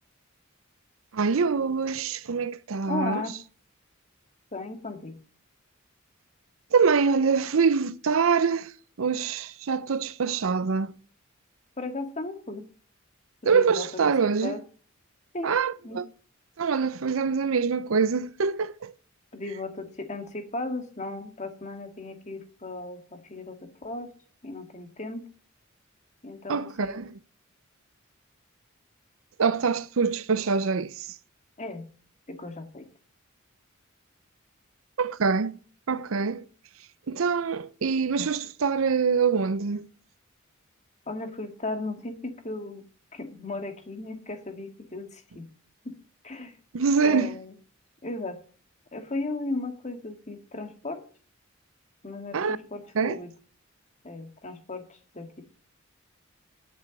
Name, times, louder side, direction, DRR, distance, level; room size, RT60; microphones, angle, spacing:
voice 1, 1.1-3.2 6.7-8.7 9.0-10.9 13.5-14.6 15.4-16.1 16.6-18.9 26.5-27.1 29.4-31.2 35.0-35.6 35.9-36.4 37.1-39.9 46.7-47.3 52.3-52.6 52.9-53.2, right 5 dB, 75° right, 0.6 m, -25 dB
voice 2, 2.9-3.4 4.5-5.2 11.8-12.7 13.4-14.6 15.3-15.6 15.8-16.0 19.3-24.1 24.4-25.2 26.2-27.0 31.6-31.9 32.3-32.9 41.1-42.8 43.1-45.5 45.8-45.9 46.2-46.5 47.0-47.5 48.0-48.4 48.9-51.0 52.0-53.3 54.0-55.4, left 2 dB, 35° left, 1.9 m, -36 dB
8.8 x 8.0 x 8.4 m
head